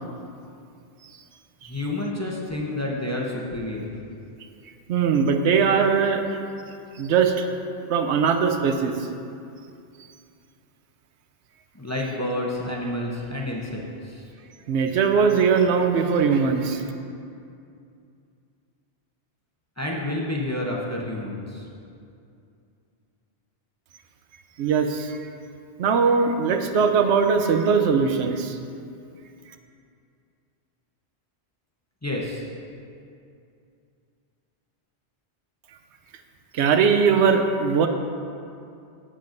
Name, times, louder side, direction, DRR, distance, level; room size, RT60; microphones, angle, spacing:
voice 1, 1.6-3.9 11.7-14.2 19.8-21.6 32.0-32.5, left 1 dB, 15° left, -3 dB, 0.6 m, -29 dB
voice 2, 4.9-6.4 6.9-7.4 7.9-8.9 14.7-16.8 24.6-25.3 25.8-28.6 36.5-37.9, right 6 dB, 85° right, 6 dB, 0.9 m, -20 dB
11.0 x 7.6 x 2.6 m, 2.5 s
omnidirectional pair, 1.1 m